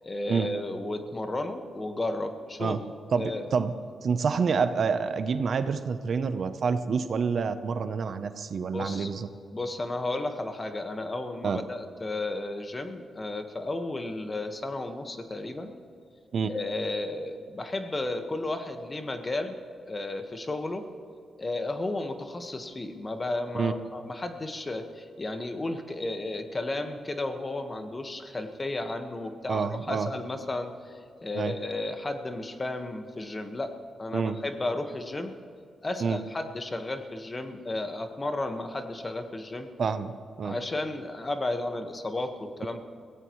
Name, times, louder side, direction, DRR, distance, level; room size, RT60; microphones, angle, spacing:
voice 1, 0.0-2.8 3.1-3.4 8.7-9.1 9.5-15.7 16.4-19.6 19.8-20.8 21.4-33.7 34.0-35.3 35.8-39.7 40.4-42.8, left 2 dB, 30° left, 6 dB, 1.5 m, -33 dB
voice 2, 3.1-3.7 4.0-9.3 11.4-11.6 16.3-16.5 23.5-23.7 29.5-30.1 31.3-31.5 34.1-34.4 36.0-36.2 39.8-40.1 40.4-40.6, right 5 dB, 60° right, 10 dB, 0.8 m, -27 dB
22.5 x 16.0 x 3.2 m, 2.4 s
cardioid pair, 70°, 0 cm